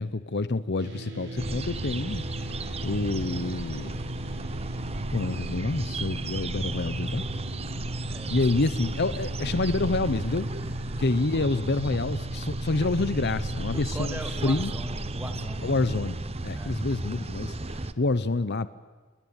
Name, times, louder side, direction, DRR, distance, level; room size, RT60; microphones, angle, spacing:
voice 1, 0.0-2.2 2.8-3.9 5.1-7.2 8.3-10.5 11.0-14.7 15.6-18.7, left 3 dB, 50° left, 15 dB, 0.8 m, -28 dB
sound 1, 0.8-16.1, equal, 55° right, 4.5 m, -38 dB
sound 2, 1.4-17.9, right 2 dB, 30° right, 1.0 m, -34 dB
voice 2, 8.1-8.4 9.4-9.5 10.2-11.0 13.6-15.7 16.5-16.8, right 1 dB, 10° right, 6 dB, 2.7 m, -42 dB
29.5 x 20.5 x 8.9 m, 1.3 s
head